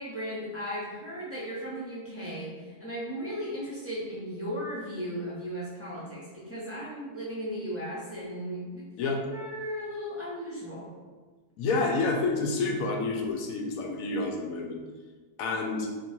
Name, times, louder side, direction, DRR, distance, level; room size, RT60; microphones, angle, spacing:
voice 1, 0.0-10.9, equal, 15° right, -8 dB, 0.6 m, -36 dB
voice 2, 11.6-14.8 15.4-15.9, left 3 dB, 70° left, 1 dB, 1.0 m, -29 dB
3.0 x 2.8 x 4.3 m, 1.4 s
omnidirectional pair, 1.6 m